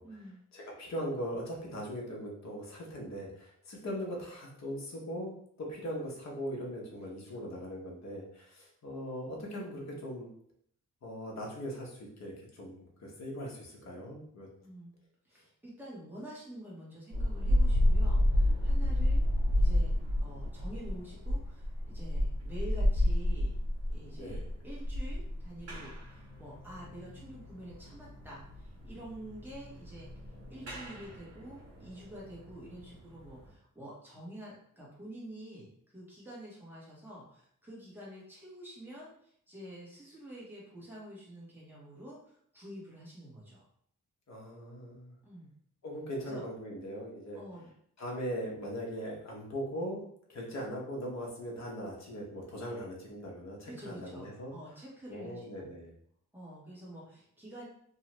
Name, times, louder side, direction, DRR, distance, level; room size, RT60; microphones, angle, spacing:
voice 1, 0.0-0.4 7.3-7.5 14.6-14.9 15.2-23.5 23.9-30.1 30.5-43.6 45.2-45.5 46.2-46.4 47.3-47.7 53.6-55.7 56.3-57.7, right 1 dB, 5° right, -6 dB, 1.0 m, -48 dB
voice 2, 0.5-5.3 5.6-10.3 11.0-14.5 24.2-24.4 44.3-45.2 45.8-47.4 48.0-54.5 55.1-55.9, equal, 55° left, -2 dB, 0.8 m, -40 dB
sound 1, 17.1-33.5, left 1 dB, 50° right, 1.1 m, -31 dB
2.7 x 2.3 x 3.0 m, 0.66 s
wide cardioid pair, 135°, 32 cm